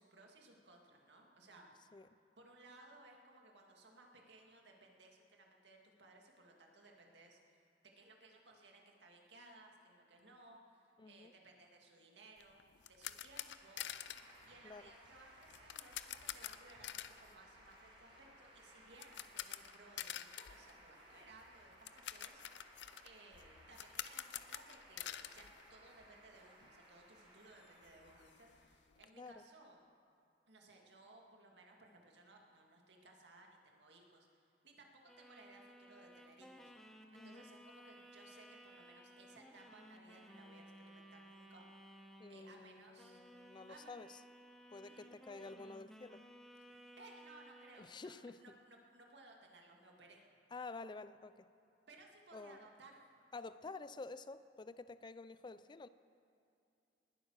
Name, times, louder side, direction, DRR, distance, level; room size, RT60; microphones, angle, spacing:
voice 1, 0.0-1.7 2.4-7.6 8.0-12.6 12.9-13.9 14.4-29.9 30.5-36.7 37.1-41.7 42.3-43.2 43.7-44.0 44.8-45.2 46.7-50.2 51.9-53.1, right 2 dB, 85° right, 1 dB, 2.1 m, -61 dB
voice 2, 11.0-11.3 14.6-14.9 29.1-29.4 37.1-37.4 42.2-44.2 44.7-46.2 47.8-48.4 50.5-51.5 52.3-52.7 53.3-55.9, left 3 dB, 25° left, 14 dB, 0.4 m, -50 dB
sound 1, 12.4-26.4 26.6-26.8 27.2-27.3 27.5-29.1, left 11 dB, 90° left, 0.6 m, -49 dB
sound 2, 12.8-28.8, right 1 dB, 30° right, 4.4 m, -62 dB
sound 3, 35.1-42.6 43.0-47.8, equal, ahead, 1.0 m, -58 dB
19.5 x 9.5 x 6.5 m, 2.6 s
head